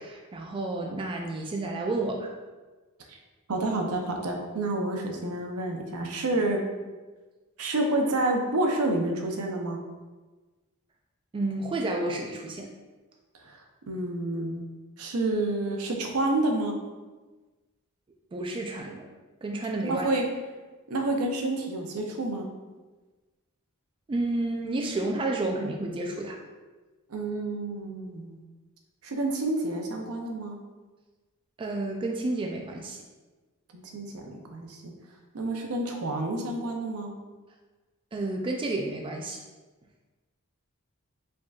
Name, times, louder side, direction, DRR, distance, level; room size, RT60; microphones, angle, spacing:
voice 1, 0.0-2.3 11.3-12.7 18.3-19.1 19.4-20.1 24.1-26.4 31.6-33.0 38.1-39.4, right 2 dB, 25° right, 1 dB, 0.3 m, -30 dB
voice 2, 3.5-6.6 7.6-9.8 13.4-13.6 13.9-14.6 15.0-16.8 19.8-20.2 20.9-22.5 27.1-28.4 29.0-30.6 33.7-34.9 35.3-37.1, right 2 dB, 75° right, 2 dB, 0.7 m, -29 dB
5.0 x 3.6 x 2.4 m, 1.3 s
head